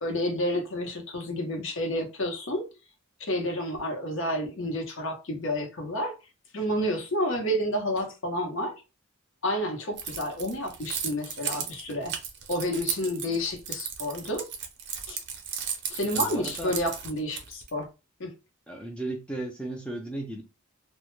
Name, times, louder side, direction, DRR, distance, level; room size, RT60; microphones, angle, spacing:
voice 1, 0.0-2.6 3.2-6.1 6.5-8.8 9.4-12.1 12.5-14.5 15.1-15.2 15.9-17.9 18.2-18.3, left 1 dB, 65° left, 0.7 m, -30 dB
Keys jangling, 10.0-17.7, right 7 dB, 50° right, 0.5 m, -34 dB
voice 2, 16.1-16.7 18.7-20.4, right 1 dB, 5° left, 0.4 m, -35 dB
2.1 x 2.1 x 3.1 m
head